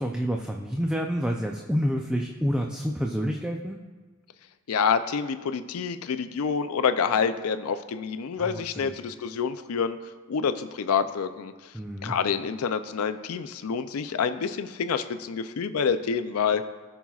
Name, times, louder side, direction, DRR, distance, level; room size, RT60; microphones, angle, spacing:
voice 1, 0.0-3.8 8.4-8.9 11.7-12.1, equal, 5° right, 1 dB, 0.4 m, -28 dB
voice 2, 4.7-10.0 10.3-11.5 12.0-16.6, left 6 dB, 85° left, 10 dB, 0.4 m, -27 dB
17.5 x 6.0 x 2.4 m, 1.4 s
head